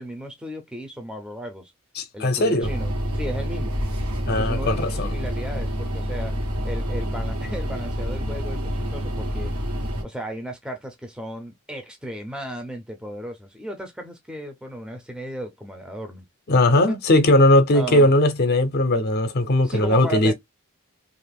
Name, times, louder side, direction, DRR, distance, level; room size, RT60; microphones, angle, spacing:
voice 1, 0.0-1.7 2.1-3.8 4.4-6.3 6.6-9.5 10.0-16.2 16.7-17.0 17.7-18.1 19.6-20.3, right 1 dB, 5° right, 0.6 m, -35 dB
voice 2, 2.0-2.7 4.3-5.2 16.5-20.3, left 1 dB, 45° left, 0.6 m, -19 dB
sound 1, 2.6-10.0, equal, 85° right, 1.2 m, -27 dB
2.9 x 2.5 x 3.4 m
head